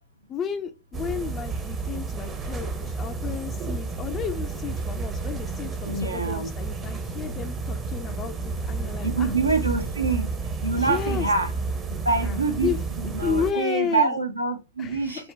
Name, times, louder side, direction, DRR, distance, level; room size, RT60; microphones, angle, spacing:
voice 1, 0.3-9.3 10.7-11.3 12.2-12.4 12.6-12.8 13.2-14.2 14.8-15.3, left 7 dB, 25° left, 0.3 m, -32 dB
sound 1, 0.9-13.5, right 4 dB, 25° right, 0.6 m, -31 dB
voice 2, 5.9-6.5 9.0-11.5 12.0-12.7 13.0-15.3, right 4 dB, 85° right, 0.5 m, -26 dB
3.5 x 2.1 x 2.6 m
figure-of-eight pair, 90°, 0 cm